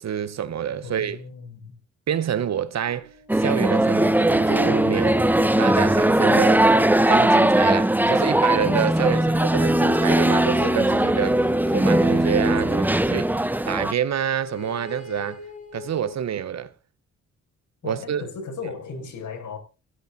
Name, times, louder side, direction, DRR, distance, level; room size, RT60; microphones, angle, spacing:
voice 1, 0.0-1.2 2.1-3.1 3.4-5.3 5.6-6.7 7.1-13.3 13.7-15.4 15.7-16.7 17.8-18.3, right 9 dB, 60° right, 1.0 m, -27 dB
voice 2, 0.8-1.8 9.0-9.3 12.6-13.3 17.8-19.6, left 4 dB, 75° left, 6.6 m, -36 dB
sound 1, 2.9-4.3 4.9-8.8 9.8-13.5 14.2-16.2, left 3 dB, 25° left, 3.8 m, -38 dB
sound 2, 3.3-13.9, right 1 dB, 5° right, 0.8 m, -19 dB
17.5 x 10.0 x 4.2 m
cardioid pair, 100°, 31 cm